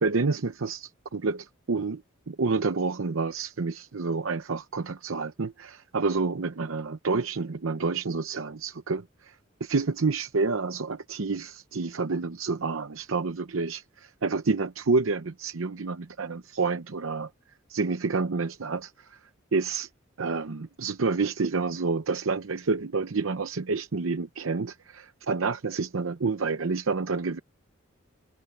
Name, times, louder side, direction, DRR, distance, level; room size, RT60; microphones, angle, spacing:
voice 1, 0.0-17.3 17.7-19.2 19.5-19.9 20.2-27.4, right 4 dB, 80° right, 0.7 m, -29 dB
head